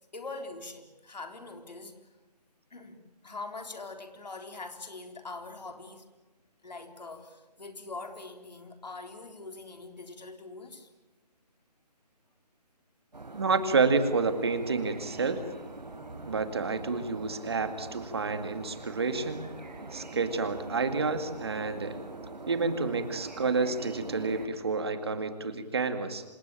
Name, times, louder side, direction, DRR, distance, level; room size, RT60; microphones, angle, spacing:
voice 1, 0.1-2.0 2.7-6.1 6.6-10.9, left 3 dB, 80° left, 6 dB, 4.0 m, -43 dB
sound 1, 13.1-24.5, right 2 dB, 90° right, 5.2 m, -43 dB
voice 2, 13.3-15.4 16.3-19.5 19.9-22.0 22.5-26.2, right 4 dB, 40° right, 9 dB, 2.0 m, -29 dB
27.0 x 18.0 x 8.8 m, 1.1 s
hypercardioid pair, 175°, 21 cm